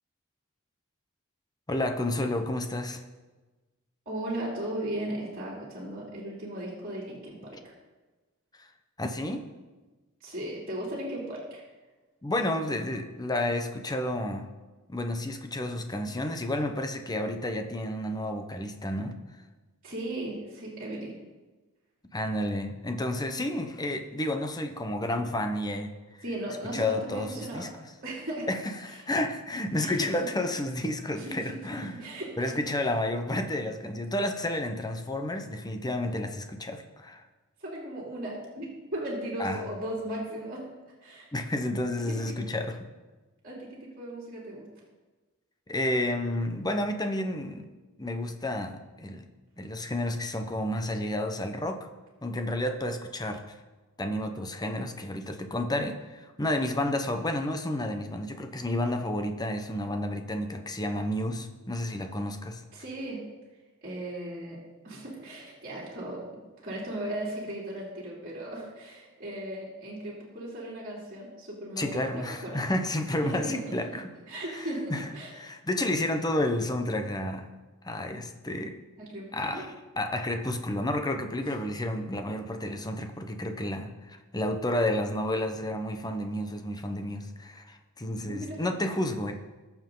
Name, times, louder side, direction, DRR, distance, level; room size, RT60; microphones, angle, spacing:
voice 1, 1.7-3.0 9.0-9.4 12.2-14.5 14.9-19.2 22.1-25.9 26.7-27.7 28.5-31.9 32.4-37.2 39.4-39.6 41.3-42.7 45.7-47.7 48.0-49.2 49.6-51.9 52.2-53.6 54.0-62.6 71.8-74.0 74.6-75.0 75.4-77.5 77.8-78.7 79.3-89.3, left 1 dB, 20° left, 6 dB, 1.0 m, -31 dB
voice 2, 4.0-7.8 10.2-11.7 19.8-21.1 26.2-27.7 28.0-28.5 29.8-30.0 31.1-31.6 32.0-32.6 37.6-40.6 41.0-41.3 42.1-42.4 43.4-44.7 62.7-63.2 63.8-64.6 64.8-66.2 66.6-72.6 73.2-73.6 74.3-75.3 79.0-79.6 81.4-81.5 88.2-88.6, right 1 dB, 45° right, -5 dB, 3.2 m, -37 dB
20.5 x 7.2 x 3.9 m, 1.2 s
head